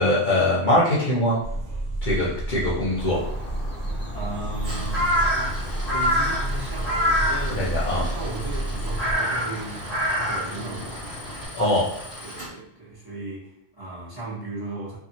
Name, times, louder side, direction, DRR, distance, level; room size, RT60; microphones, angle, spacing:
voice 1, 0.0-1.4 2.0-3.2 7.6-8.0 11.5-11.9, left 1 dB, 55° left, -6 dB, 0.7 m, -22 dB
sound 1, 1.4-9.2, right 1 dB, 85° right, 0.9 m, -30 dB
Crow, 3.0-11.5, equal, ahead, 1.2 m, -28 dB
voice 2, 4.1-7.7 7.9-11.0 12.2-15.0, right 2 dB, 20° right, -7 dB, 0.9 m, -36 dB
Tools, 4.5-12.5, equal, 60° right, 1.3 m, -39 dB
2.7 x 2.4 x 2.7 m, 0.80 s
omnidirectional pair, 1.2 m